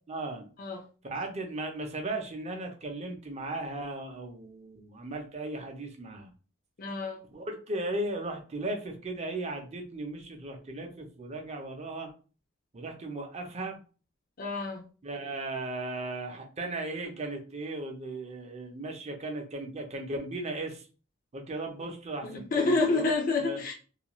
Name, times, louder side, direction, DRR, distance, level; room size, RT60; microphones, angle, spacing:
voice 1, 0.1-0.5 1.0-6.3 7.3-12.1 12.7-13.8 15.0-20.9 21.3-23.0 23.4-23.6, right 2 dB, 35° right, 3 dB, 0.5 m, -36 dB
voice 2, 6.8-7.2 14.4-14.8 22.2-23.7, left 3 dB, 45° left, 2 dB, 0.5 m, -28 dB
2.4 x 2.2 x 2.9 m, 0.36 s
head